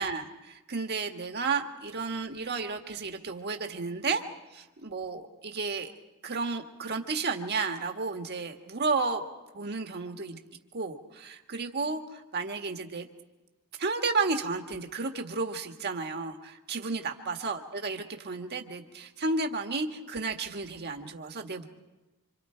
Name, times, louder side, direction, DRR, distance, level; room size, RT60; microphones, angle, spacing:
voice 1, 0.0-4.2 4.5-5.9 6.2-9.2 9.5-10.4 10.7-13.1 13.8-21.7, right 4 dB, 50° right, 4 dB, 1.7 m, -32 dB
27.0 x 26.5 x 4.5 m, 1.1 s
head